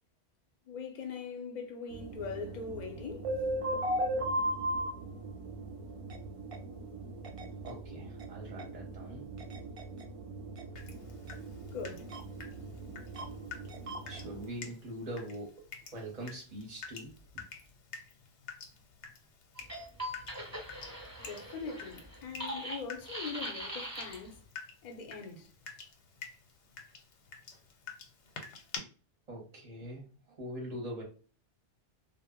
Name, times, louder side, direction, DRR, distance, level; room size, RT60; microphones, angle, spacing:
voice 1, 0.7-3.3 11.6-12.2 21.2-24.4 24.8-25.5, left 5 dB, 50° left, 0.6 m, -41 dB
sound 1, 1.9-14.5, right 1 dB, 65° right, 0.3 m, -38 dB
voice 2, 7.6-9.3 14.1-17.4 29.3-31.0, right 1 dB, 40° right, 0.7 m, -43 dB
Water tap faucet / Drip, 10.8-28.8, left 5 dB, 80° left, 0.9 m, -49 dB
sound 2, 19.6-24.4, equal, 15° right, 0.9 m, -41 dB
2.1 x 2.0 x 3.5 m
omnidirectional pair, 1.2 m